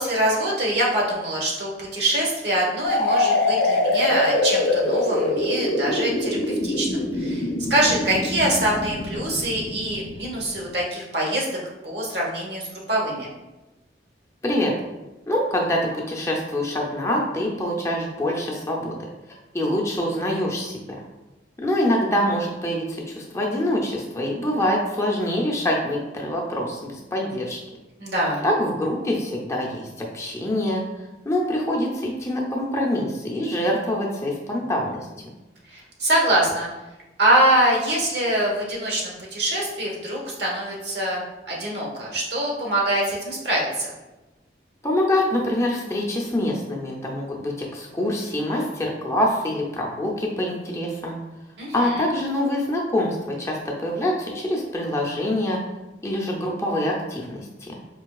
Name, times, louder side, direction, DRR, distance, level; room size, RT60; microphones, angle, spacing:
voice 1, 0.0-11.5 11.8-13.3 28.0-28.4 35.7-36.7 37.2-43.9 51.6-52.1, right 1 dB, 65° right, -3 dB, 1.0 m, -24 dB
sound 1, 2.8-10.5, left 2 dB, 70° left, 0.6 m, -24 dB
voice 2, 14.4-14.7 15.3-19.0 19.3-20.8 21.6-27.6 28.4-30.8 31.2-34.9 44.8-51.2 51.7-55.6 56.0-57.8, left 1 dB, 15° left, -2 dB, 0.5 m, -25 dB
4.5 x 2.8 x 2.3 m, 1.1 s
head